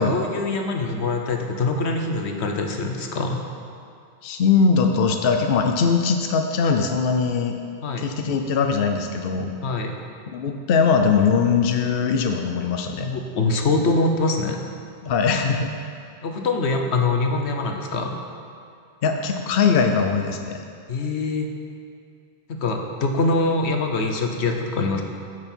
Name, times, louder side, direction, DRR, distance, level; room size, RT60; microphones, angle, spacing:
voice 1, 0.0-3.5 7.8-8.1 9.6-10.0 13.0-14.6 16.2-18.2 20.9-21.5 22.5-25.0, left 3 dB, 85° left, 3 dB, 1.2 m, -24 dB
voice 2, 4.2-7.6 8.0-9.5 10.3-13.1 15.0-15.7 19.0-20.6, left 5 dB, 65° left, 4 dB, 0.8 m, -21 dB
14.0 x 6.4 x 4.4 m, 2.4 s
omnidirectional pair, 1.1 m